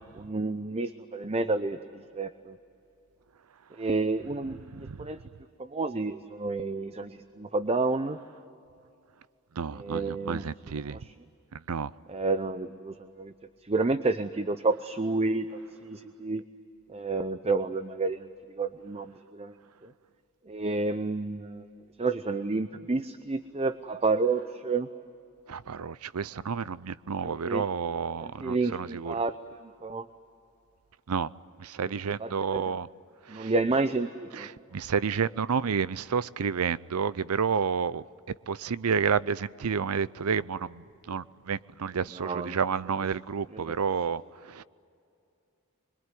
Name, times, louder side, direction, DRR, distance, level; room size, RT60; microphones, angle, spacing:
voice 1, 0.2-2.6 3.8-5.2 5.6-8.2 9.7-10.4 10.8-11.1 12.1-13.3 13.6-16.4 16.9-18.3 18.6-19.6 19.8-19.9 20.5-21.7 22.0-24.9 27.2-27.7 28.2-29.4 29.6-30.0 32.2-32.7 33.3-34.5 42.2-42.6 43.5-43.8, right 3 dB, 30° right, 0.7 m, -30 dB
voice 2, 4.7-5.1 9.6-11.0 11.5-11.9 25.5-29.1 31.1-31.3 31.6-32.9 33.3-33.5 34.3-38.0 38.5-44.6, right 6 dB, 85° right, 0.6 m, -30 dB
25.0 x 23.0 x 9.3 m
head